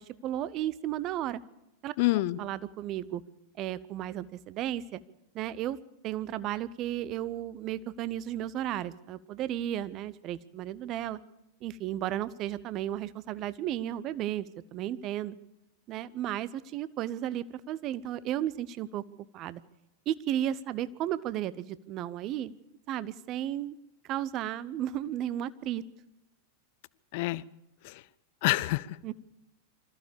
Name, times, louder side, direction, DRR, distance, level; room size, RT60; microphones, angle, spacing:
voice 1, 0.0-1.4 1.8-1.9 2.4-3.2 3.6-5.0 5.3-5.8 6.0-11.2 11.6-14.4 14.7-15.4 15.9-19.0 19.3-19.6 20.1-22.5 22.9-23.8 24.0-25.8 29.0-29.1, right 12 dB, 35° right, 0.8 m, -34 dB
voice 2, 2.0-2.4 27.1-27.4 27.8-28.0 28.4-29.0, left 19 dB, 50° left, 0.6 m, -27 dB
25.5 x 14.5 x 7.0 m
figure-of-eight pair, 90°, 0 cm